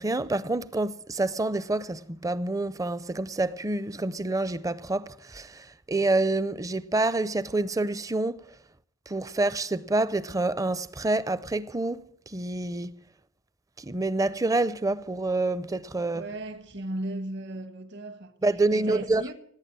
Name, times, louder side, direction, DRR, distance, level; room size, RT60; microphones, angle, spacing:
voice 1, 0.0-8.4 9.1-13.0 13.8-16.2 18.4-19.2, right 2 dB, 15° right, 0.5 m, -27 dB
voice 2, 16.1-18.3 18.7-19.3, right 1 dB, 60° right, 1.4 m, -36 dB
18.0 x 8.9 x 7.6 m
head